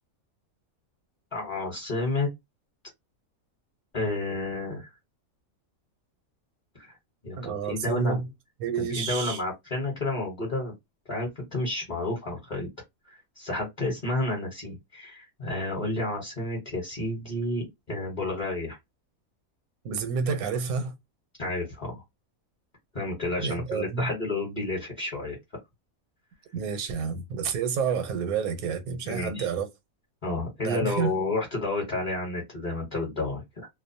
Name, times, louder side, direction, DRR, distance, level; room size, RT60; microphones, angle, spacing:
voice 1, 1.3-2.3 3.9-4.9 6.7-6.9 7.2-8.2 8.8-10.7 11.1-12.7 13.1-18.8 21.4-22.0 22.9-25.4 29.0-29.4 30.2-33.7, left 2 dB, 35° left, 1.0 m, -31 dB
voice 2, 7.4-8.3 8.6-9.4 19.8-20.9 23.4-24.1 26.5-29.7 30.6-31.1, right 6 dB, 85° right, 1.1 m, -29 dB
2.6 x 2.0 x 2.6 m
omnidirectional pair, 1.5 m